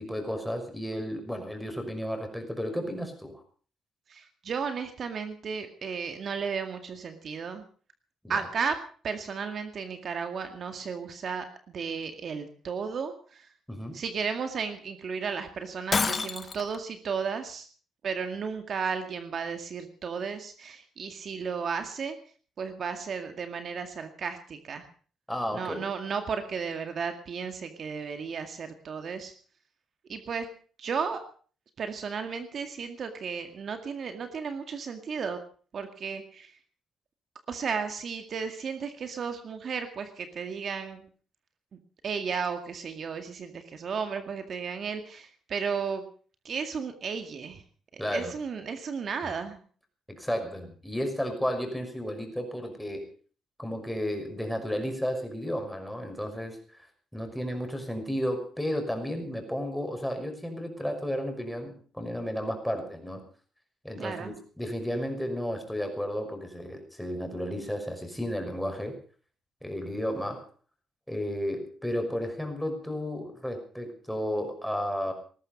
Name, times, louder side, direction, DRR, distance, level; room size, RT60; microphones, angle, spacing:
voice 1, 0.0-3.4 8.2-8.3 13.7-14.0 25.3-25.8 48.0-48.3 50.1-53.1 53.6-56.9 57.1-63.2 63.8-68.9 69.6-70.5 71.1-75.1, equal, ahead, 4 dB, 5.7 m, -33 dB
voice 2, 4.1-7.6 8.3-8.8 9.0-13.5 13.9-17.7 18.0-22.2 22.6-24.9 25.5-29.3 30.1-30.5 30.8-31.2 31.8-35.4 35.7-36.6 37.5-41.1 42.0-46.0 46.4-47.6 47.9-49.6 64.0-64.3, right 6 dB, 55° right, 7 dB, 2.1 m, -34 dB
Shatter, 15.9-16.8, left 4 dB, 35° left, 1.4 m, -27 dB
19.5 x 14.0 x 5.4 m, 0.42 s
cardioid pair, 90°, 0 cm